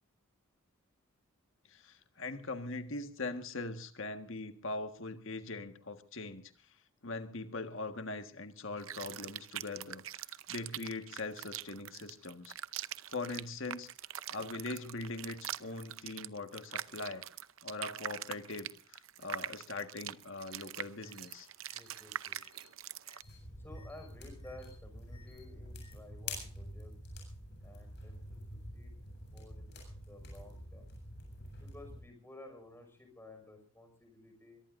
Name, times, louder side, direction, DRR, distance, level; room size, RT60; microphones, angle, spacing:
voice 1, 1.7-6.5 7.0-12.5 13.1-13.9 14.3-17.3 17.6-21.5, left 3 dB, 65° left, 8 dB, 1.6 m, -41 dB
sound 1, 8.8-23.2, right 11 dB, 70° right, 0.7 m, -43 dB
sound 2, 20.5-20.6 21.0-21.3 21.6-22.0 22.3-22.6 23.0-23.3 23.7-24.0 24.4-24.7 25.1-25.4 25.8-25.9, left 5 dB, 25° left, 7.2 m, -64 dB
voice 2, 21.7-22.4 23.6-26.9 27.6-28.9 29.2-29.8 30.1-30.9 31.6-34.6, left 2 dB, 10° left, 4 dB, 5.9 m, -54 dB
sound 3, 23.2-32.0, left 1 dB, 50° left, 7.8 m, -47 dB
23.0 x 22.5 x 2.6 m, 0.40 s
head